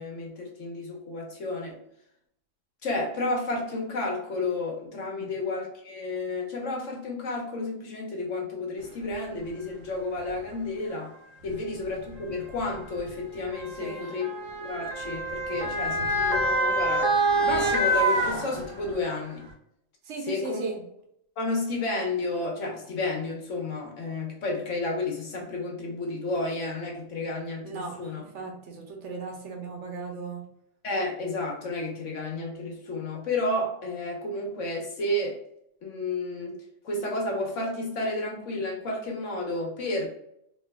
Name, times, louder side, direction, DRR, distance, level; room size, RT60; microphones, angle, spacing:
voice 1, 0.0-1.8 2.8-11.1 11.4-14.3 14.6-19.4 20.3-20.7 21.4-28.2 30.8-35.4 35.8-36.6 36.8-40.1, left 2 dB, 75° left, 0 dB, 1.3 m, -31 dB
Motor vehicle (road) / Siren, 9.1-9.2 10.2-10.4 11.4-19.0 19.5-19.6, right 1 dB, 90° right, 1.2 m, -27 dB
voice 2, 13.6-14.2 20.0-20.8 27.6-30.5, right 4 dB, 70° right, 1 dB, 1.1 m, -38 dB
4.4 x 2.9 x 2.2 m, 0.76 s
omnidirectional pair, 1.3 m